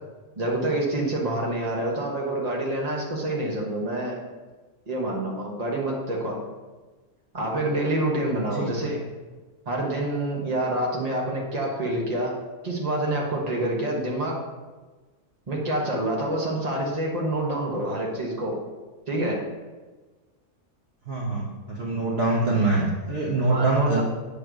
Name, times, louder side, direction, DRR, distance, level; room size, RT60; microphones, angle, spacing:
voice 1, 0.4-4.2 4.9-6.4 7.3-9.0 9.6-12.4 12.6-14.4 15.5-18.6 19.1-19.4 23.5-24.0, right 1 dB, 30° right, -2 dB, 1.3 m, -27 dB
voice 2, 8.3-8.8 21.1-24.0, right 2 dB, 45° right, -5 dB, 1.2 m, -24 dB
8.6 x 3.3 x 6.1 m, 1.3 s
omnidirectional pair, 1.6 m